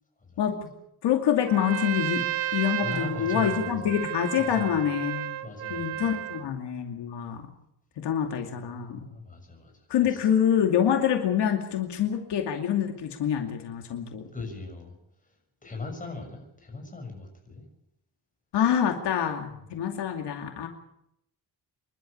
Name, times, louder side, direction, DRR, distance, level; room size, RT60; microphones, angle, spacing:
voice 1, 1.0-2.2 2.5-5.3 5.7-7.4 8.0-9.0 9.9-14.2 18.5-20.7, left 9 dB, 75° left, 4 dB, 2.6 m, -26 dB
Trumpet, 1.4-6.5, right 13 dB, 85° right, 2.0 m, -32 dB
voice 2, 2.8-3.8 4.4-4.8 5.4-6.1 8.4-10.3 14.3-14.9 15.2-15.3 15.6-17.6 19.5-19.6, left 3 dB, 20° left, 3 dB, 6.8 m, -40 dB
27.0 x 12.0 x 8.7 m, 0.80 s
cardioid pair, 150°, 41 cm